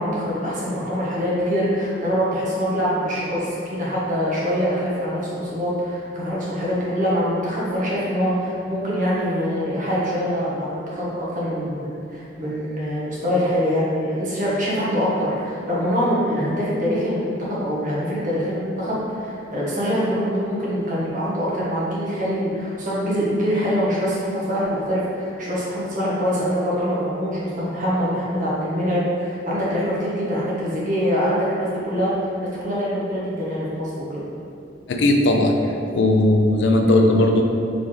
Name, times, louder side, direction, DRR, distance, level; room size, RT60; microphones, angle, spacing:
voice 1, 0.0-32.1 32.4-34.2, equal, 45° right, -7 dB, 1.2 m, -24 dB
voice 2, 34.9-35.6 35.9-37.4, left 1 dB, 65° left, 3 dB, 0.5 m, -17 dB
4.1 x 3.9 x 3.2 m, 2.6 s
head